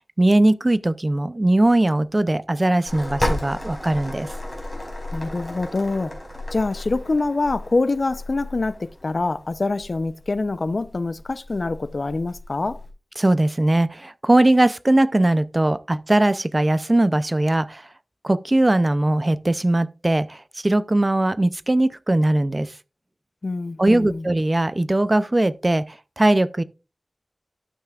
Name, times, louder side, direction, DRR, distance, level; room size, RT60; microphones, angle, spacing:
voice 1, 0.2-4.3 13.2-17.9 18.2-22.7 23.8-26.6, right 1 dB, 30° right, 0.5 m, -20 dB
sound 1, 2.9-12.9, left 1 dB, 15° left, 4.7 m, -33 dB
voice 2, 5.1-6.1 6.5-12.8 23.4-24.3, left 3 dB, 60° left, 0.6 m, -25 dB
12.0 x 9.1 x 2.4 m
wide cardioid pair, 80°, 0 cm